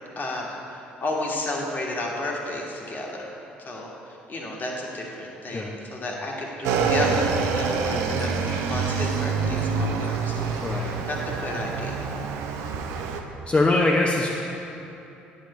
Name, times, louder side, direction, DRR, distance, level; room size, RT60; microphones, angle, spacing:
voice 1, 0.1-3.3 3.6-3.9 4.3-12.1, left 2 dB, 40° left, -2 dB, 1.6 m, -32 dB
Motorcycle / Engine, 6.6-13.2, right 5 dB, 70° right, 0.6 m, -26 dB
voice 2, 13.5-14.3, left 2 dB, 25° left, -2 dB, 0.8 m, -22 dB
9.9 x 7.4 x 3.1 m, 3.0 s
hypercardioid pair, 55°, 5 cm